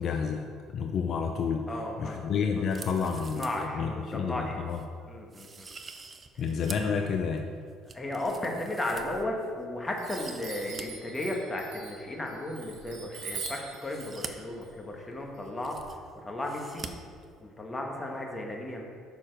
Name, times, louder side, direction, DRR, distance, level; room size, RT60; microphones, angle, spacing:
voice 1, 0.0-1.7 2.0-4.8 6.4-7.5, left 6 dB, 50° left, 4 dB, 0.5 m, -30 dB
voice 2, 1.7-2.3 3.0-3.1 3.3-4.7 5.1-5.7 7.9-15.8 16.2-16.8 17.4-18.8, left 1 dB, 15° left, 0 dB, 1.2 m, -35 dB
sound 1, 2.6-3.7 4.1-4.2 4.7-4.9 5.3-7.0 7.4-9.5 9.9-10.8 11.1-11.2 13.2-14.3 15.1-15.2 15.4-16.1 16.4-16.9 17.2-17.3, right 4 dB, 30° right, 0.6 m, -45 dB
Chime, 8.9-9.6 10.0-15.8, right 4 dB, 80° right, 1.6 m, -44 dB
6.7 x 5.9 x 4.5 m, 2.1 s
cardioid pair, 110°, 0 cm